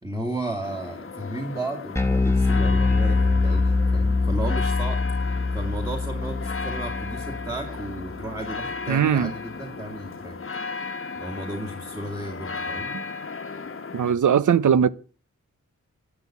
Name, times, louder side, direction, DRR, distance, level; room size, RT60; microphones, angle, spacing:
voice 1, 0.0-10.4 10.7-12.9, right 1 dB, 10° right, 2.4 m, -34 dB
sound 1, 0.6-14.1, left 4 dB, 45° left, 1.2 m, -35 dB
Bass guitar, 2.0-8.4, left 3 dB, 10° left, 1.9 m, -24 dB
voice 2, 8.9-9.3 12.9-13.0 13.9-14.9, right 8 dB, 75° right, 0.8 m, -20 dB
12.0 x 9.0 x 8.5 m
wide cardioid pair, 120°, 30 cm